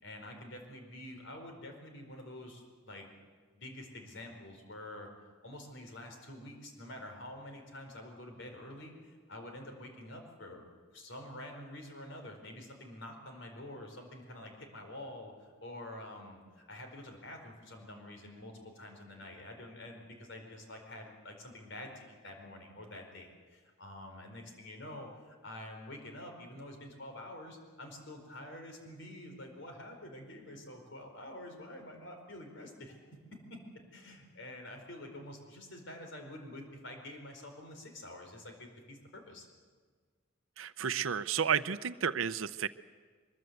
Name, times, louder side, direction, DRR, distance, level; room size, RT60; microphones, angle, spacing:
voice 1, 0.0-3.1 3.5-5.1 5.4-10.6 10.9-32.9 33.3-33.6 33.9-39.5, left 1 dB, 65° left, 4 dB, 4.6 m, -47 dB
voice 2, 40.6-42.7, right 7 dB, 90° right, 12 dB, 0.6 m, -32 dB
23.0 x 21.5 x 8.1 m, 1.5 s
head